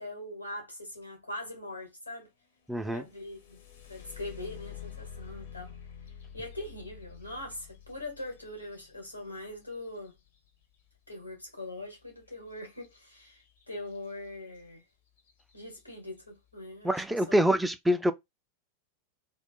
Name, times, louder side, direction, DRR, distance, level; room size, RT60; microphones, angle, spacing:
voice 1, 0.0-2.3 2.8-5.8 6.3-10.1 11.1-14.8 15.5-17.3, left 1 dB, 85° left, 1.1 m, -42 dB
voice 2, 2.7-3.0 16.8-18.1, equal, 5° right, 0.3 m, -25 dB
sound 1, 2.9-10.7 12.8-13.0 13.4-14.0 14.6-14.7 15.2-15.5, left 9 dB, 55° left, 0.7 m, -48 dB
2.4 x 2.1 x 3.6 m
figure-of-eight pair, 90°, 0 cm